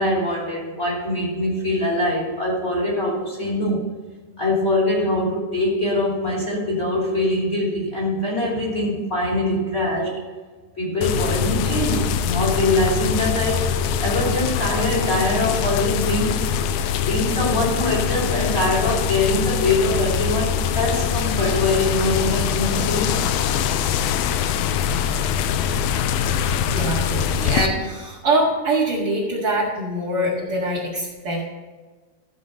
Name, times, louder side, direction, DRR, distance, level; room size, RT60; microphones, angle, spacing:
voice 1, 0.0-3.9 4.4-10.2 10.8-13.7 14.0-16.4 17.0-23.2, left 1 dB, 20° left, -4 dB, 2.5 m, -23 dB
sound 1, 11.0-27.7, left 8 dB, 85° left, 2.2 m, -23 dB
voice 2, 26.7-31.4, right 1 dB, 45° right, -6 dB, 2.0 m, -23 dB
14.5 x 5.3 x 5.4 m, 1.4 s
omnidirectional pair, 4.8 m